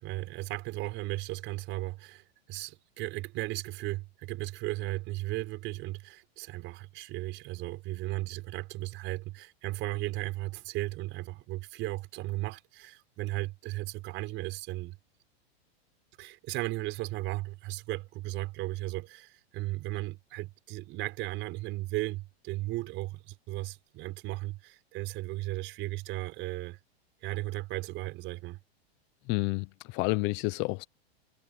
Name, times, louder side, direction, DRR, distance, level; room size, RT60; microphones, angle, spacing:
voice 1, 0.0-15.0 16.2-26.8 27.2-28.6, right 19 dB, 35° right, 5.9 m, -36 dB
voice 2, 29.3-30.9, left 24 dB, 35° left, 0.9 m, -30 dB
supercardioid pair, 145°, 31 cm